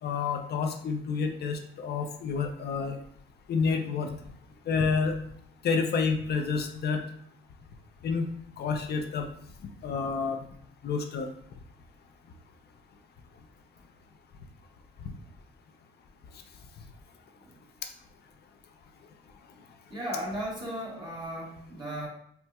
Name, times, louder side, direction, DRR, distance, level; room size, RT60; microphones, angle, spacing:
voice 1, 0.0-3.0 3.5-4.1 4.7-5.2 5.6-7.0 8.0-8.3 8.6-9.3 9.8-10.4 10.8-11.3, left 5 dB, 55° left, 5 dB, 0.5 m, -29 dB
voice 2, 19.9-22.1, equal, 25° right, -5 dB, 1.1 m, -36 dB
4.3 x 2.1 x 2.2 m, 0.68 s
cardioid pair, 90°, 20 cm